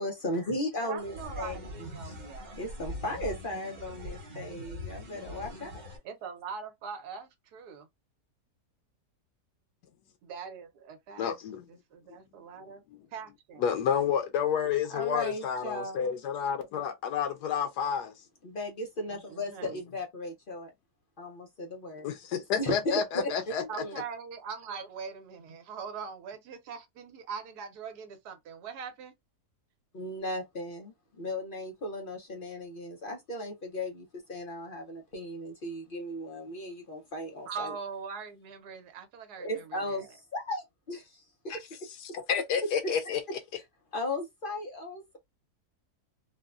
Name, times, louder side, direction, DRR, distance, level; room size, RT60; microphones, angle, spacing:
voice 1, 0.0-1.6 2.0-2.2 2.6-5.7 14.9-16.1 18.4-20.7 21.2-22.1 22.6-24.0 29.9-37.7 39.4-41.6 43.9-45.2, left 1 dB, 55° left, 0.5 m, -36 dB
voice 2, 0.8-2.6 6.0-7.9 10.2-11.2 11.7-12.8 13.1-13.7 19.3-19.8 23.7-29.1 37.5-40.0, right 6 dB, 75° right, 1.2 m, -42 dB
sound 1, 1.0-6.0, equal, 40° right, 0.8 m, -42 dB
voice 3, 11.2-11.6 13.6-18.1 22.0-23.6 41.5-41.6 42.3-43.2, left 8 dB, 90° left, 1.2 m, -30 dB
3.6 x 2.1 x 2.3 m
omnidirectional pair, 1.7 m